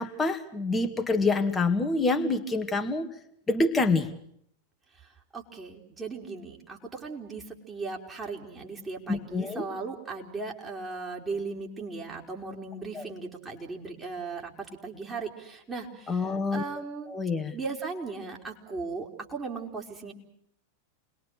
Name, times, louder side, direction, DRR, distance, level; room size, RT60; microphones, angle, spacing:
voice 1, 0.0-3.1 3.5-4.1 9.1-9.7 12.9-13.1 16.1-16.6 17.1-17.5, left 3 dB, 15° left, 7 dB, 2.2 m, -26 dB
voice 2, 5.0-17.1 17.5-20.1, right 4 dB, 15° right, 0 dB, 4.4 m, -37 dB
29.0 x 21.5 x 6.5 m, 0.70 s
figure-of-eight pair, 90°, 0 cm